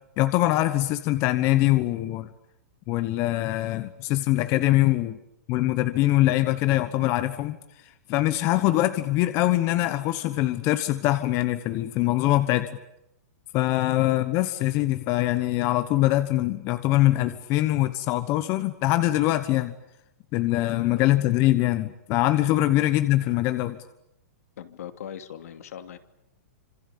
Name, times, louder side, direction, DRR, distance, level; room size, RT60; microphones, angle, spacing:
voice 1, 0.2-2.3 2.9-5.2 5.5-7.6 7.8-12.7 13.5-19.7 20.3-23.8, left 16 dB, 30° left, 11 dB, 1.1 m, -23 dB
voice 2, 24.6-26.0, left 9 dB, 70° left, 8 dB, 2.8 m, -39 dB
26.5 x 26.0 x 8.6 m, 0.81 s
hypercardioid pair, 160°, 9 cm